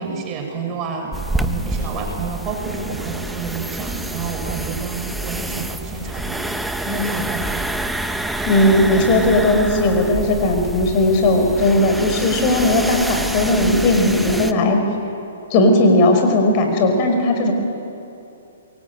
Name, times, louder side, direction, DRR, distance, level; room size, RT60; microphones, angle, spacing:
voice 1, 0.0-6.5 6.8-7.6, right 4 dB, 25° right, 2 dB, 6.6 m, -29 dB
sound 1, 1.1-14.5, right 1 dB, 5° right, 1.1 m, -27 dB
voice 2, 8.4-14.8 15.5-17.5, left 1 dB, 35° left, 4 dB, 5.0 m, -17 dB
27.5 x 22.5 x 9.0 m, 2.8 s
hypercardioid pair, 130°, 0 cm